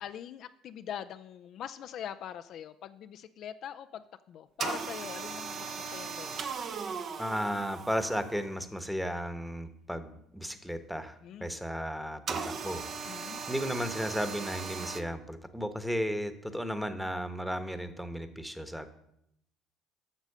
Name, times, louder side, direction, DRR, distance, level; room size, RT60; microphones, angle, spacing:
voice 1, 0.0-6.6 11.2-11.6 13.1-13.4, left 10 dB, 60° left, 10 dB, 0.4 m, -43 dB
sound 1, 4.6-8.5 12.3-15.0, right 5 dB, 50° right, 0.9 m, -38 dB
voice 2, 7.2-11.1 11.4-18.9, equal, ahead, 10 dB, 1.1 m, -34 dB
8.3 x 6.2 x 6.7 m, 0.76 s
supercardioid pair, 85°, 0 cm